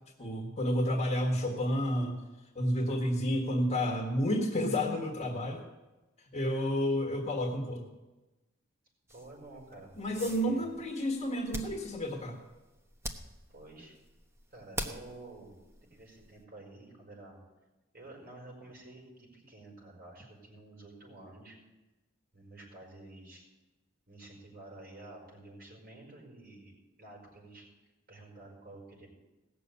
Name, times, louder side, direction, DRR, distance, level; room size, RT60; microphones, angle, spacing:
voice 1, 0.2-2.2 2.5-5.6 6.3-7.8 10.0-12.4, equal, 35° left, 1 dB, 1.6 m, -30 dB
sound 1, 9.1-16.4, right 1 dB, 15° right, 1.0 m, -45 dB
voice 2, 9.1-10.7 13.5-13.9 14.5-15.5 15.9-17.4 17.9-21.6 22.3-23.5 24.1-26.7 27.0-27.7 28.1-29.1, right 2 dB, 50° right, -1 dB, 5.4 m, -50 dB
17.5 x 6.9 x 8.2 m, 1.1 s
head